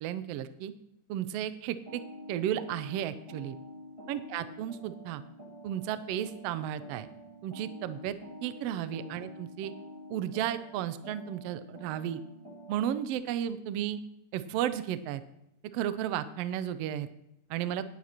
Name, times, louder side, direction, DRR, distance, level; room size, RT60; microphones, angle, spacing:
voice 1, 0.0-0.7 1.1-2.0 2.3-3.6 4.1-5.2 5.6-7.1 7.4-8.2 8.4-9.7 10.1-12.2 12.7-14.0 14.3-15.2 15.7-17.1 17.5-17.8, right 11 dB, 80° right, 12 dB, 1.4 m, -33 dB
sound 1, 1.9-13.1, equal, 15° right, 1.5 m, -48 dB
18.0 x 9.1 x 3.0 m, 0.84 s
omnidirectional pair, 3.4 m